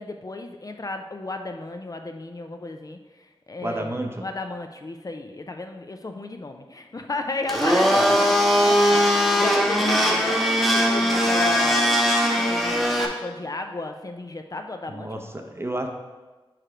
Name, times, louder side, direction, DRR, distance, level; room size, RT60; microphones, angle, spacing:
voice 1, 0.0-3.9 4.2-8.3 8.6-15.1, left 2 dB, 40° left, 5 dB, 0.4 m, -34 dB
voice 2, 3.6-4.3 14.9-15.9, right 1 dB, 25° right, 3 dB, 0.7 m, -31 dB
Domestic sounds home sounds, 7.5-13.1, equal, ahead, 0.9 m, -20 dB
4.9 x 4.4 x 5.0 m, 1.2 s
wide cardioid pair, 80°, 9 cm